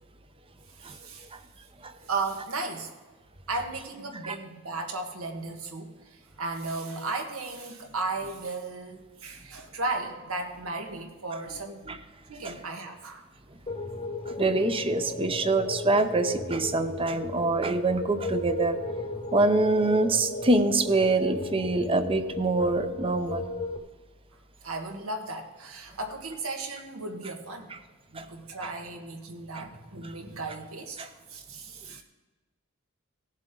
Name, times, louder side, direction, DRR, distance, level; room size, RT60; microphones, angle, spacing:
voice 1, 0.8-1.3 2.1-2.9 3.5-11.9 12.3-13.2 22.6-22.7 24.6-27.7 28.1-32.0, right 3 dB, 85° right, 3 dB, 1.6 m, -35 dB
sound 1, 13.7-23.8, left 2 dB, 25° left, 1.0 m, -35 dB
voice 2, 14.3-18.8 19.3-23.5 28.2-28.3 29.5-29.6 31.0-31.1, right 2 dB, 25° right, 9 dB, 0.7 m, -25 dB
18.0 x 7.5 x 3.8 m, 1.4 s
head